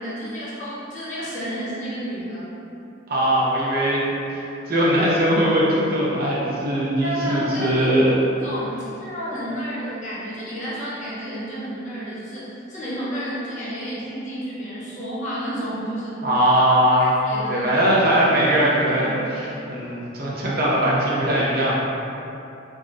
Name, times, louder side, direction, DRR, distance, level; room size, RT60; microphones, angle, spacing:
voice 1, 0.0-2.5 7.0-7.9 8.4-16.2 17.2-17.8 18.9-19.1, equal, 40° left, -9 dB, 0.8 m, -31 dB
voice 2, 3.1-8.1 16.2-17.2 17.5-21.8, right 1 dB, 55° right, -6 dB, 0.5 m, -20 dB
3.6 x 2.1 x 2.4 m, 2.9 s
head